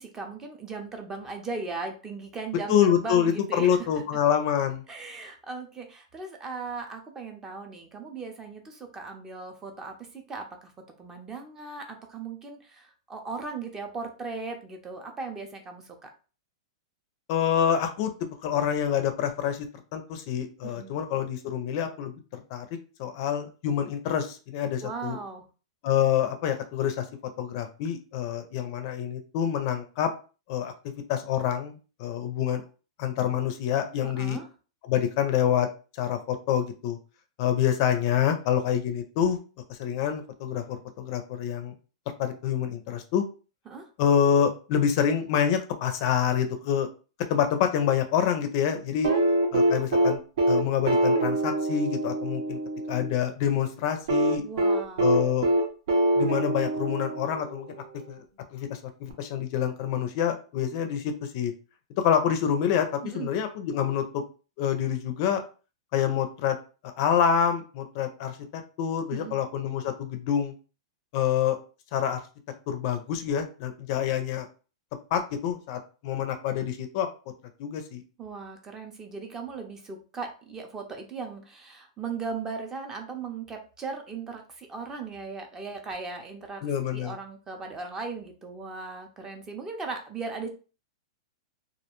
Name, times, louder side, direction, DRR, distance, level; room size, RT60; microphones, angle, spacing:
voice 1, 0.0-3.9 4.9-10.7 11.0-16.1 20.6-21.0 24.8-25.4 34.0-34.5 43.7-43.9 54.4-55.2 63.0-63.3 69.1-69.4 78.2-90.5, right 4 dB, 15° right, 4 dB, 0.5 m, -38 dB
voice 2, 2.7-4.8 17.3-18.1 18.4-19.7 19.9-22.7 23.0-25.2 25.8-27.0 27.4-30.1 30.5-30.7 31.1-32.6 33.0-34.4 34.9-35.7 36.0-37.0 37.4-39.4 39.7-41.7 42.2-43.2 44.0-46.9 47.3-49.1 49.5-50.2 50.5-52.6 52.9-54.4 55.0-55.5 56.2-57.7 58.1-58.2 58.5-61.5 62.0-64.2 64.6-65.4 65.9-66.6 66.8-70.5 71.1-71.6 71.9-72.2 72.7-74.5 75.1-77.1 77.6-78.0 86.6-87.2, left 9 dB, 45° left, 7 dB, 0.4 m, -26 dB
sound 1, 49.0-53.1 54.1-57.7 59.1-59.2, right 1 dB, 70° right, 0.7 m, -24 dB
2.3 x 2.1 x 2.9 m, 0.35 s
hypercardioid pair, 150°, 3 cm